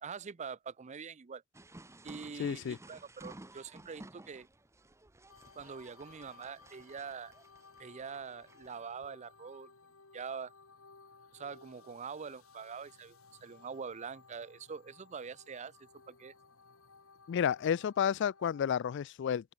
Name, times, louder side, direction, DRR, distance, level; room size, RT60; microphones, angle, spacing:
voice 1, 0.0-1.4 2.0-4.5 5.5-7.3 7.8-9.7 10.1-10.5 11.3-15.7 16.1-16.3, right 6 dB, 35° right, 0.5 m, -44 dB
sound 1, 1.5-8.8, right 1 dB, 15° right, 1.0 m, -55 dB
voice 2, 2.4-2.8 17.3-19.5, left 8 dB, 55° left, 0.3 m, -31 dB
sound 2, 5.3-18.7, left 4 dB, 80° left, 2.6 m, -60 dB
open air
head